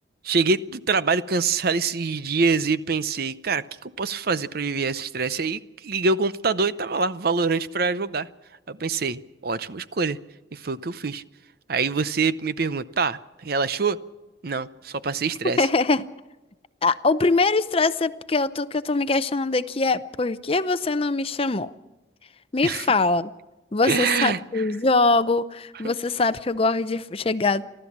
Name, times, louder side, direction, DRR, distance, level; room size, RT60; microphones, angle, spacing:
voice 1, 0.2-8.3 8.7-10.2 10.5-11.2 11.7-14.0 14.4-15.7 22.6-22.9 23.8-24.6 25.8-25.9, right 4 dB, 50° right, 0.6 m, -25 dB
voice 2, 15.6-16.1 16.8-21.7 22.5-23.3 23.7-27.7, left 3 dB, 30° left, 0.6 m, -23 dB
29.5 x 12.5 x 7.3 m
head